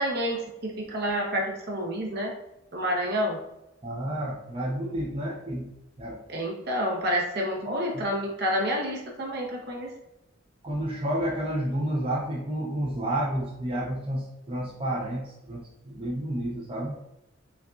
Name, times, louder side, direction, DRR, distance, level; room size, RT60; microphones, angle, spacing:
voice 1, 0.0-2.3 2.7-3.4 6.3-9.9, equal, 50° right, -1 dB, 0.9 m, -29 dB
voice 2, 3.8-5.7 6.0-6.2 7.6-8.0 10.6-17.0, right 1 dB, 25° right, -5 dB, 0.7 m, -30 dB
5.7 x 2.4 x 2.5 m, 0.88 s
head